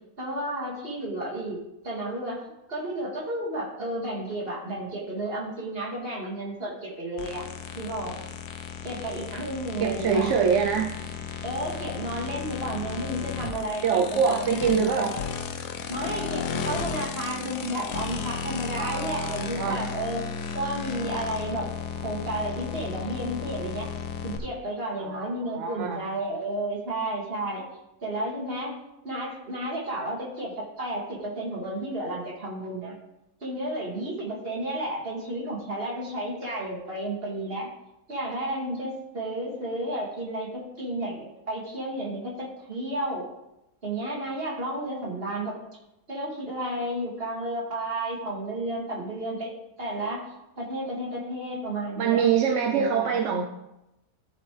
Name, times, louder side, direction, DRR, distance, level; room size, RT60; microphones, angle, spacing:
voice 1, 0.2-7.5 7.8-8.2 8.8-10.3 11.4-15.2 15.9-20.3 20.5-21.7 22.0-24.0 24.2-27.6 28.0-28.7 29.0-33.0 33.4-37.7 38.1-43.3 43.8-45.6 46.1-49.5 49.8-50.2 50.6-53.2, right 1 dB, 35° right, -4 dB, 2.5 m, -32 dB
sound 1, 7.2-24.4, left 7 dB, 90° left, 1.3 m, -34 dB
voice 2, 9.8-11.0 13.8-15.1 18.7-19.8 25.0-26.0 52.0-53.4, right 7 dB, 60° right, 3 dB, 0.8 m, -25 dB
14.0 x 5.3 x 3.3 m, 0.90 s
omnidirectional pair, 1.7 m